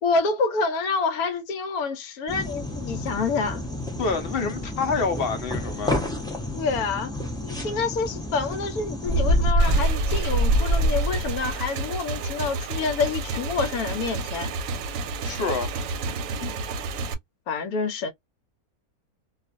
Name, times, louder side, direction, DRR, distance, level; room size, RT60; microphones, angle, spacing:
voice 1, 0.0-3.6 6.5-7.1 7.4-14.5 16.4-16.6 17.5-18.1, left 4 dB, 80° left, 1.1 m, -27 dB
sound 1, 2.3-9.5, left 1 dB, 5° left, 0.3 m, -32 dB
voice 2, 4.0-6.0 15.2-15.7, left 4 dB, 55° left, 0.7 m, -27 dB
Bird, 9.1-11.5, right 1 dB, 45° right, 0.7 m, -22 dB
Motorcycle / Engine, 9.6-17.1, right 3 dB, 70° right, 0.9 m, -31 dB
2.4 x 2.4 x 2.5 m
omnidirectional pair, 1.6 m